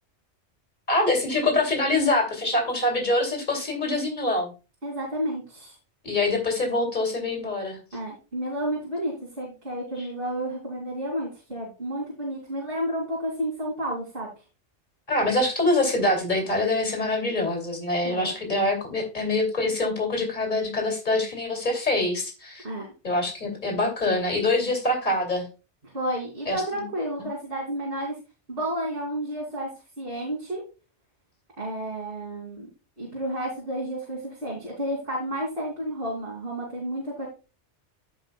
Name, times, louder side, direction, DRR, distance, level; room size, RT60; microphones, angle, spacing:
voice 1, 0.9-4.5 6.0-7.8 10.0-10.1 15.1-22.6 23.0-25.5 26.5-26.9, left 2 dB, 40° left, 1 dB, 2.9 m, -25 dB
voice 2, 4.8-5.8 7.9-14.3 18.0-18.3 22.6-22.9 25.9-28.1 28.5-29.7 30.0-30.6 31.6-32.7 33.0-37.3, right 1 dB, 55° right, -5 dB, 3.1 m, -31 dB
15.5 x 5.4 x 2.3 m, 0.31 s
omnidirectional pair, 1.2 m